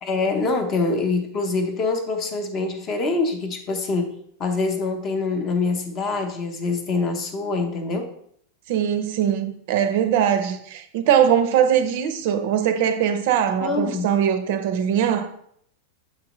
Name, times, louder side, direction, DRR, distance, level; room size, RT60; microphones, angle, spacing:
voice 1, 0.0-4.1 4.4-8.1 13.6-14.1, left 3 dB, 25° left, 0.7 m, -25 dB
voice 2, 8.7-15.3, right 9 dB, 50° right, 0.5 m, -21 dB
6.8 x 4.7 x 3.0 m
supercardioid pair, 175°, 0 cm